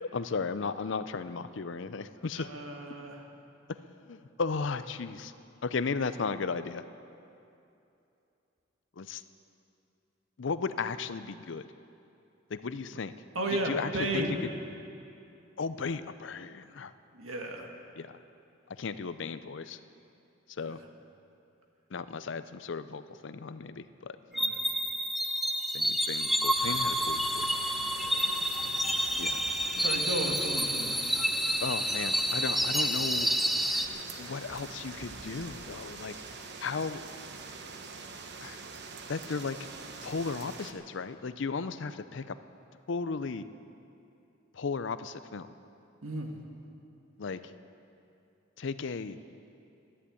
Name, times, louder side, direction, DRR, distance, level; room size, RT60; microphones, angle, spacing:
voice 1, 0.0-2.5 4.1-5.3 5.6-6.8 9.0-9.2 10.4-11.7 12.5-13.1 13.7-14.2 15.6-16.9 18.0-18.2 18.8-19.8 20.5-20.8 21.9-24.1 25.7-27.6 29.2-29.4 29.8-29.9 31.6-33.3 34.2-36.1 36.6-37.0 38.4-38.6 39.1-39.6 40.0-42.4 42.9-43.4 44.5-45.5 47.2-47.4 48.6-49.2, left 4 dB, 60° left, 13 dB, 0.5 m, -35 dB
voice 2, 2.3-3.3 13.4-14.4 17.1-17.7 20.6-20.8 24.3-24.6 27.9-28.3 29.8-31.0 46.0-46.4, right 1 dB, 90° right, 2 dB, 1.8 m, -34 dB
sound 1, 24.3-33.9, equal, ahead, 0.5 m, -29 dB
sound 2, 26.5-40.7, right 4 dB, 55° right, 1.0 m, -44 dB
12.5 x 11.0 x 8.5 m, 2.7 s
head